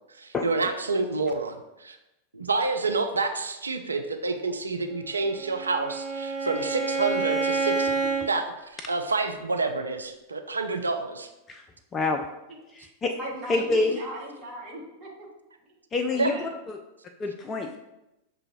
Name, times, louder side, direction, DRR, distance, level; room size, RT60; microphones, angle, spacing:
voice 1, 0.2-2.0 2.3-7.9 8.3-11.3 16.2-16.3, right 3 dB, 75° right, 6 dB, 0.3 m, -28 dB
Bowed string instrument, 5.1-8.3, right 4 dB, ahead, 0.9 m, -28 dB
voice 2, 11.9-12.2 12.7-13.1 13.5-14.0 15.9-16.3 16.7-16.8 17.2-17.8, left 3 dB, 25° left, 4 dB, 0.3 m, -27 dB
voice 3, 13.2-15.3 16.1-16.5, right 1 dB, 30° right, -4 dB, 1.3 m, -38 dB
6.0 x 2.5 x 2.9 m, 0.93 s
figure-of-eight pair, 90°, 0 cm